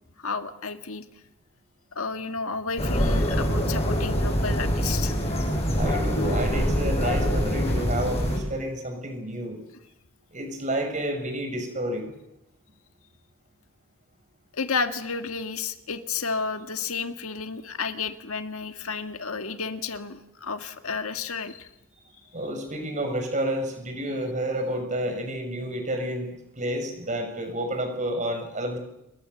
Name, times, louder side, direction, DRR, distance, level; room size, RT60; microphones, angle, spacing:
voice 1, 0.2-1.0 1.9-5.2 14.5-21.7, left 4 dB, 70° left, 8 dB, 1.8 m, -31 dB
sound 1, 2.8-8.4, equal, 30° left, 7.5 m, -24 dB
voice 2, 5.7-9.6 10.3-12.1 22.3-28.8, right 1 dB, 35° right, 5 dB, 6.7 m, -30 dB
28.0 x 22.5 x 8.0 m, 0.87 s
head